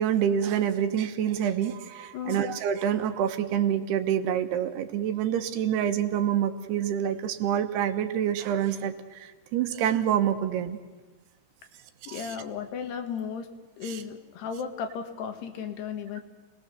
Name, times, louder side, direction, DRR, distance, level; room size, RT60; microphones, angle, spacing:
voice 1, 0.0-10.8 12.0-12.4 13.8-14.0, right 9 dB, 80° right, 8 dB, 3.2 m, -27 dB
voice 2, 12.1-13.5 13.8-16.2, left 7 dB, 80° left, 5 dB, 3.8 m, -35 dB
28.5 x 19.5 x 6.9 m, 1.2 s
omnidirectional pair, 4.7 m